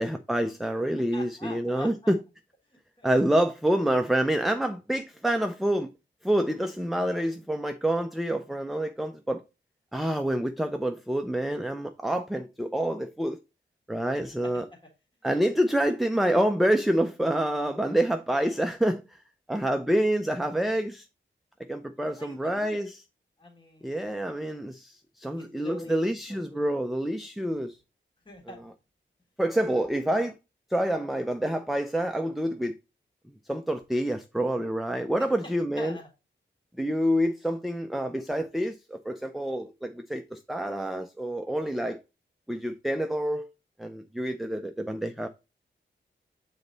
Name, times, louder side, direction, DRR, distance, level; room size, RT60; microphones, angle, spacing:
voice 1, 0.0-2.2 3.0-5.9 6.2-9.4 9.9-13.4 13.9-14.6 15.2-19.2 19.5-21.1 21.7-22.9 23.8-27.8 29.4-30.3 30.7-32.7 33.5-36.0 36.8-42.0 42.5-43.5 43.8-45.3, right 1 dB, ahead, 0.5 m, -27 dB
voice 2, 1.1-2.1 2.7-3.1 14.4-14.8 22.0-22.8 23.4-24.4 25.4-26.0 26.3-26.6 28.3-28.6 35.2-36.1, left 1 dB, 25° left, 1.9 m, -45 dB
7.2 x 4.0 x 3.9 m
wide cardioid pair, 125°, 19 cm